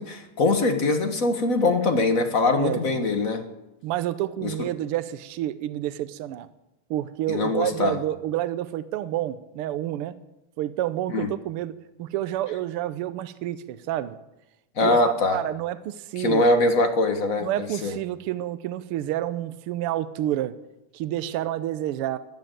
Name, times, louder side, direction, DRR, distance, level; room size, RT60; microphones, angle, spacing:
voice 1, 0.0-3.4 4.4-4.5 7.3-7.9 11.1-11.3 14.8-15.4 16.2-18.0, left 2 dB, 45° left, 6 dB, 1.1 m, -22 dB
voice 2, 2.6-3.0 3.8-6.5 6.9-10.2 10.6-11.7 12.0-14.2 14.8-16.4 17.4-20.5 20.9-22.2, right 13 dB, 85° right, 14 dB, 1.2 m, -29 dB
13.5 x 12.0 x 9.0 m, 0.94 s
omnidirectional pair, 3.3 m